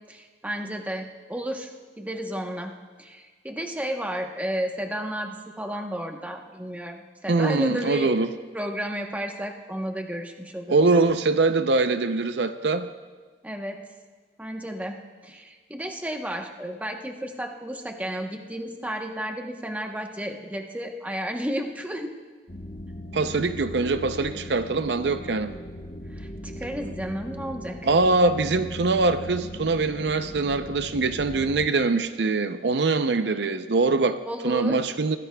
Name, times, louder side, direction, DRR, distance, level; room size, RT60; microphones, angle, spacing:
voice 1, 0.1-1.7 2.0-2.7 3.0-8.1 8.5-10.9 13.4-13.8 14.4-15.0 15.2-22.1 26.1-27.9 34.2-34.8, equal, 10° right, 3 dB, 0.9 m, -32 dB
voice 2, 7.3-8.3 10.7-12.9 23.1-25.5 27.8-34.2 34.4-35.2, right 3 dB, 75° right, 10 dB, 0.6 m, -23 dB
sound 1, 22.5-31.7, left 1 dB, 45° left, 1.1 m, -39 dB
22.5 x 16.0 x 2.3 m, 1.5 s
head